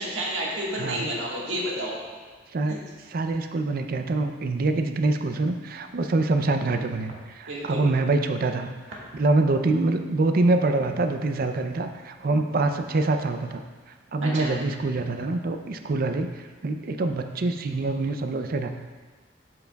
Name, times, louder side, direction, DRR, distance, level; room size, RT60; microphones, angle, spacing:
voice 1, 0.0-2.0 2.7-2.8 7.5-7.8 14.2-14.5, right 1 dB, 80° right, -4 dB, 1.7 m, -30 dB
voice 2, 0.8-1.1 2.5-2.8 3.1-8.7 9.1-13.6 14.1-18.7, right 2 dB, 50° right, 6 dB, 0.5 m, -25 dB
13.0 x 4.8 x 2.3 m, 1.4 s
head